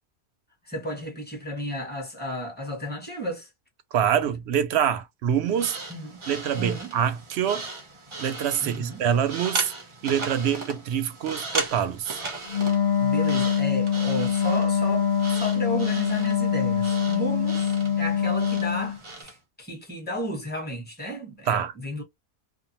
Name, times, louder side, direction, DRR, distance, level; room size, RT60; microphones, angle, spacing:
voice 1, 0.7-3.5 5.9-6.2 6.5-6.9 8.6-9.0 13.0-22.0, equal, 10° left, 1.1 m, -33 dB
voice 2, 3.9-5.8 6.3-7.7 8.2-9.7 10.0-12.2 21.5-21.7, right 9 dB, 75° right, 0.8 m, -25 dB
sound 1, 5.5-19.4, right 3 dB, 35° right, 0.6 m, -37 dB
Wind instrument woodwind instrument, 12.5-19.0, left 8 dB, 55° left, 0.7 m, -24 dB
2.5 x 2.2 x 2.8 m
omnidirectional pair, 1.1 m